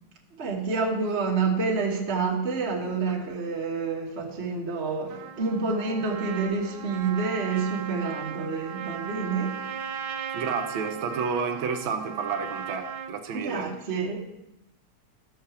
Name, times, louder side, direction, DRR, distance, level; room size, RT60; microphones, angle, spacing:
voice 1, 0.3-10.1 13.3-14.2, right 4 dB, 40° right, -1 dB, 0.9 m, -28 dB
Trumpet, 5.1-13.1, right 7 dB, 85° right, 1.1 m, -37 dB
voice 2, 10.3-13.7, right 5 dB, 65° right, 4 dB, 1.3 m, -30 dB
12.0 x 5.8 x 7.0 m, 0.91 s
omnidirectional pair, 3.3 m